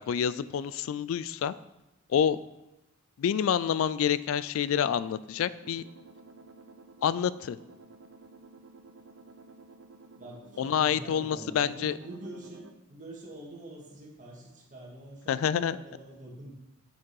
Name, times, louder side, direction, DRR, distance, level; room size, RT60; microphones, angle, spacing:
voice 1, 0.0-1.5 2.1-2.4 3.2-5.8 7.0-7.6 10.6-11.9 15.3-15.8, left 8 dB, 75° left, 16 dB, 0.3 m, -27 dB
sound 1, 5.6-12.7, right 3 dB, 65° right, 0.6 m, -52 dB
voice 2, 10.2-16.5, right 1 dB, 40° right, -2 dB, 1.9 m, -45 dB
7.4 x 5.9 x 4.7 m, 0.94 s
head